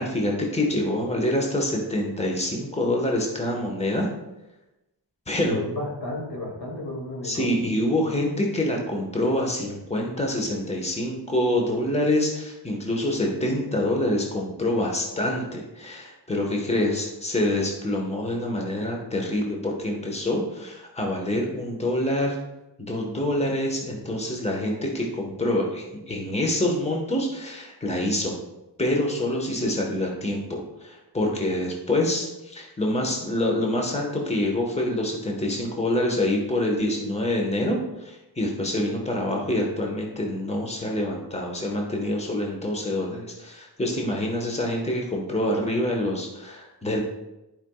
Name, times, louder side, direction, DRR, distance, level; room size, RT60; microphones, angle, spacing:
voice 1, 0.0-4.1 5.3-5.6 7.2-22.4 22.8-28.4 28.8-47.0, left 1 dB, 15° left, 0 dB, 1.3 m, -26 dB
voice 2, 5.4-7.8, left 2 dB, 70° left, -3 dB, 2.5 m, -32 dB
11.0 x 5.3 x 2.4 m, 0.98 s
wide cardioid pair, 55°, 43 cm